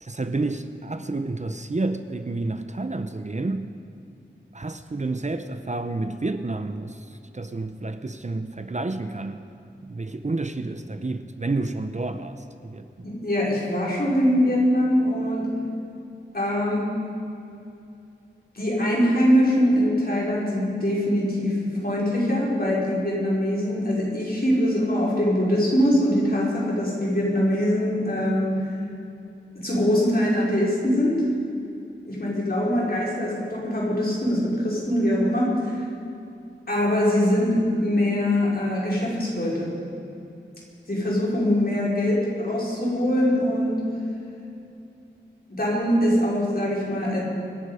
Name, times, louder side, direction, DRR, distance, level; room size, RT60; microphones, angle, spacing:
voice 1, 0.0-3.7 4.5-9.4 9.8-12.9, right 2 dB, 35° right, 9 dB, 0.8 m, -30 dB
voice 2, 13.0-15.5 16.3-17.0 18.5-28.7 29.5-31.2 32.0-35.9 36.7-39.7 40.9-43.9 45.5-47.2, equal, 50° left, -5 dB, 5.1 m, -23 dB
25.0 x 11.0 x 5.0 m, 2.7 s
wide cardioid pair, 65°, 20 cm